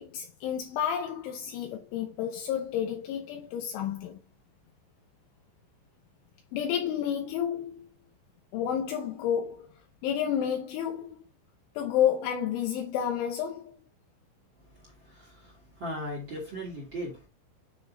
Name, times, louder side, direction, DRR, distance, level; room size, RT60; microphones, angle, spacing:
voice 1, 0.0-4.2 6.5-7.9 8.5-9.7 10.0-11.2 11.8-13.7, left 9 dB, 80° left, 3.3 m, -30 dB
voice 2, 14.6-17.3, equal, 35° right, 2.2 m, -38 dB
9.5 x 6.0 x 2.7 m
omnidirectional pair, 5.7 m